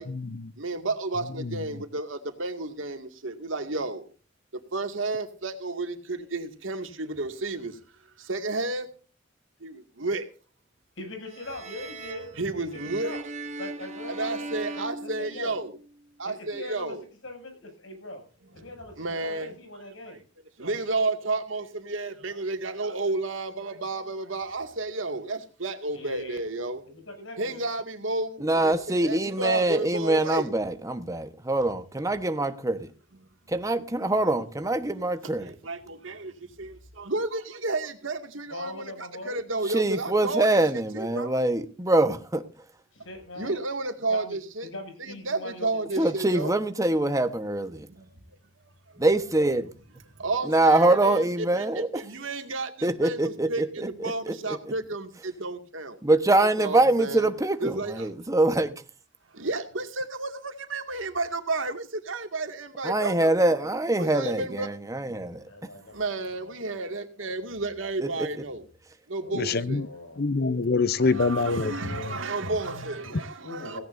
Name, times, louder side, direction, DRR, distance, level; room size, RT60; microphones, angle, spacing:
voice 1, 0.0-0.5 1.4-1.6 69.3-69.9 70.2-72.1, left 3 dB, 55° left, 0.7 m, -26 dB
voice 2, 0.6-4.0 4.7-7.8 8.2-8.9 9.6-10.3 12.4-13.2 14.1-15.8 16.2-17.0 19.0-19.5 20.1-20.2 20.6-26.8 27.4-30.5 35.4-40.6 40.9-41.3 43.4-44.7 45.0-46.5 47.9-48.1 48.9-49.0 50.2-51.2 51.6-56.0 56.4-57.3 57.6-58.1 59.3-63.3 64.0-64.7 65.8-68.6 69.1-69.8 70.9-73.8, right 2 dB, 90° right, 2.3 m, -32 dB
voice 3, 11.0-13.2 13.6-14.4 14.8-15.6 16.2-17.0 17.2-18.2 18.5-20.2 25.9-26.4 26.9-27.6 38.5-39.4 42.9-43.6 44.1-46.5 65.5-66.6 67.2-67.3 69.2-70.2 73.1-73.8, left 1 dB, 90° left, 7.3 m, -41 dB
sound 1, 11.3-15.9, right 2 dB, 35° right, 2.0 m, -39 dB
voice 4, 28.4-32.9 33.5-35.5 39.7-42.4 46.0-47.9 49.0-49.7 50.4-51.9 52.8-53.9 54.2-54.7 56.0-58.7 62.8-65.5 68.0-68.3, right 2 dB, 15° right, 1.2 m, -24 dB
17.0 x 17.0 x 2.7 m
head